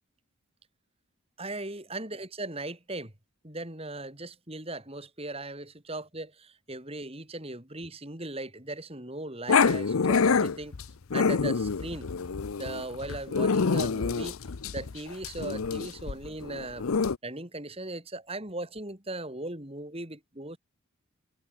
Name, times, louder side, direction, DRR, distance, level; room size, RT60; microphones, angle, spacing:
voice 1, 1.4-3.1 3.4-10.7 11.1-12.1 12.6-14.4 14.7-16.9 17.2-20.6, right 2 dB, 25° right, 3.4 m, -38 dB
Growling, 9.5-17.2, left 5 dB, 75° left, 0.7 m, -26 dB
head